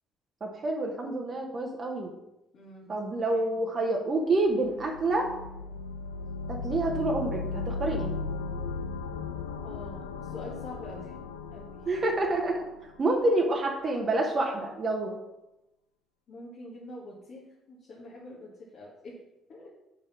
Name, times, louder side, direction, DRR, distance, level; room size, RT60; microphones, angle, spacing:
voice 1, 0.4-2.1 2.9-5.3 6.5-8.1 11.8-15.1, right 2 dB, 40° right, 1 dB, 1.1 m, -28 dB
voice 2, 2.5-2.9 3.3-3.4 9.6-11.1 11.5-11.9 16.3-19.2 19.5-19.7, left 1 dB, 50° left, -5 dB, 1.9 m, -45 dB
sound 1, 4.4-13.3, left 4 dB, 80° left, 0.4 m, -36 dB
5.3 x 5.2 x 6.0 m, 0.93 s
figure-of-eight pair, 50°, 0 cm